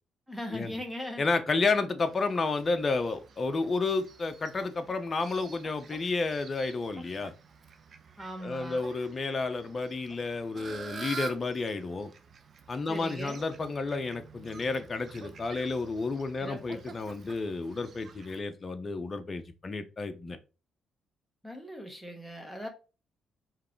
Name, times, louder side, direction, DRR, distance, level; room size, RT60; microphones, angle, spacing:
voice 1, 0.3-1.2 8.2-8.8 12.9-13.4 16.4-16.8 21.4-22.7, equal, 5° right, 1.5 m, -39 dB
voice 2, 1.2-7.3 8.4-12.1 12.7-20.4, left 3 dB, 35° left, 0.8 m, -31 dB
Fowl, 2.0-18.4, right 5 dB, 50° right, 0.7 m, -48 dB
4.8 x 3.3 x 3.1 m
cardioid pair, 90°, 0 cm